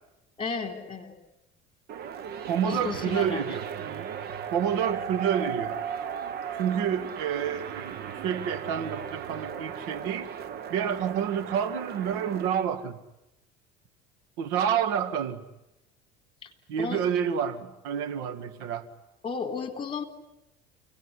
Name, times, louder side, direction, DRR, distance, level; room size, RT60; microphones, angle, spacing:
voice 1, 0.4-1.2 2.6-3.4 16.4-16.5 16.8-17.0 19.2-20.0, left 5 dB, 25° left, 6 dB, 4.0 m, -33 dB
sound 1, 1.9-12.5, right 8 dB, 55° right, 1.6 m, -36 dB
voice 2, 2.5-3.6 4.5-5.8 6.6-10.3 10.7-13.0 14.4-15.4 16.7-18.8, right 8 dB, 80° right, 10 dB, 2.0 m, -29 dB
29.0 x 18.5 x 9.8 m, 0.92 s
supercardioid pair, 105°, 20 cm